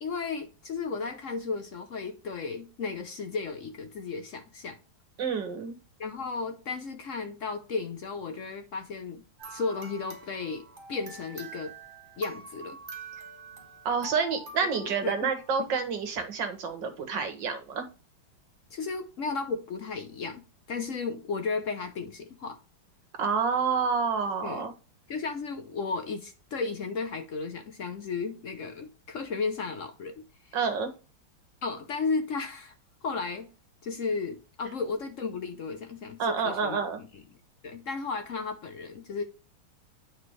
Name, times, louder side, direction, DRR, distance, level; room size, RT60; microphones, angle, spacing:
voice 1, 0.0-4.8 6.0-9.2 9.5-11.8 12.2-12.8 14.8-15.3 18.7-22.6 24.4-24.7 25.1-30.6 31.6-32.7 33.0-33.5 33.8-36.8 37.6-39.2, left 4 dB, 70° left, 0.7 m, -34 dB
voice 2, 5.2-5.8 13.9-17.9 23.2-24.7 30.5-30.9 36.2-37.0, right 5 dB, 60° right, 2.0 m, -28 dB
sound 1, 9.4-15.9, right 4 dB, 30° right, 1.3 m, -46 dB
8.7 x 4.8 x 3.1 m
omnidirectional pair, 2.3 m